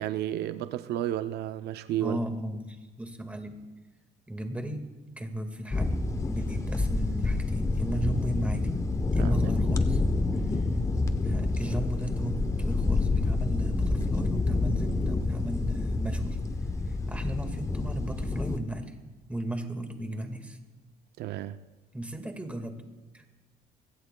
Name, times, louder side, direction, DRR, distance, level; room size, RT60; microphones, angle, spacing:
voice 1, 0.0-2.2 9.2-9.3 21.2-21.6, right 12 dB, 75° right, 0.5 m, -32 dB
voice 2, 2.0-3.6 4.3-4.8 5.2-8.7 9.1-10.0 10.3-10.7 11.2-16.4 16.8-19.0 19.3-20.6 21.9-22.8 23.1-23.2, right 1 dB, 10° right, 1.7 m, -36 dB
sound 1, 5.7-18.6, left 3 dB, 20° left, 0.8 m, -28 dB
24.5 x 16.0 x 2.2 m
cardioid pair, 110°, 17 cm